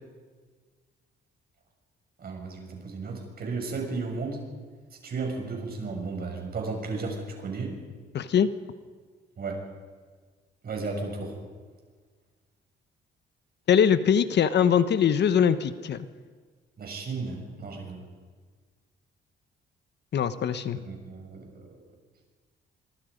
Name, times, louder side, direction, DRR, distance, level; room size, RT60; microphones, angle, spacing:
voice 1, 2.2-4.4 5.0-7.8 9.4-9.6 10.6-11.4 16.8-18.1 20.8-21.7, right 4 dB, 50° right, 1 dB, 7.0 m, -34 dB
voice 2, 8.1-8.5 13.7-16.1 20.1-20.8, left 8 dB, 60° left, 12 dB, 1.1 m, -22 dB
25.0 x 24.0 x 5.3 m, 1.5 s
cardioid pair, 90°, 20 cm